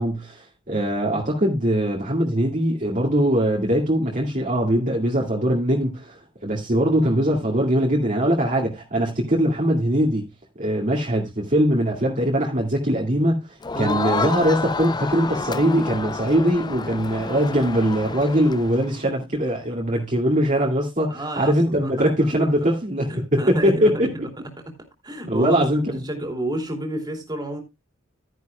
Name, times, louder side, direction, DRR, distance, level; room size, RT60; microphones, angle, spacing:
voice 1, 0.0-10.2 10.6-13.4 13.8-24.1 25.3-26.0, equal, 40° right, 2.3 m, -21 dB
Crowd, 13.6-18.9, left 4 dB, 20° left, 0.5 m, -29 dB
voice 2, 21.1-22.1 22.4-22.5 23.1-24.3 24.7-24.8 25.0-27.6, right 1 dB, 20° right, 3.0 m, -30 dB
13.0 x 10.0 x 2.3 m
head